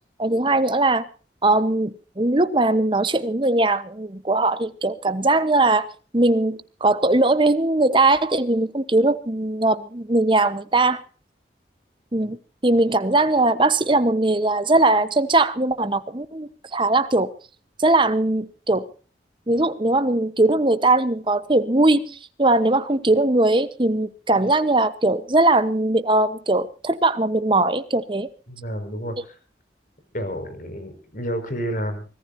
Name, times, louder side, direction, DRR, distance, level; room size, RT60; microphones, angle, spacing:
voice 1, 0.2-1.0 1.4-5.9 6.1-11.0 12.1-12.4 12.6-17.3 17.8-18.9 19.5-28.3, right 2 dB, 25° right, 1.1 m, -20 dB
voice 2, 28.5-29.4 30.1-32.1, equal, 50° left, 5.3 m, -30 dB
24.5 x 18.5 x 2.7 m
head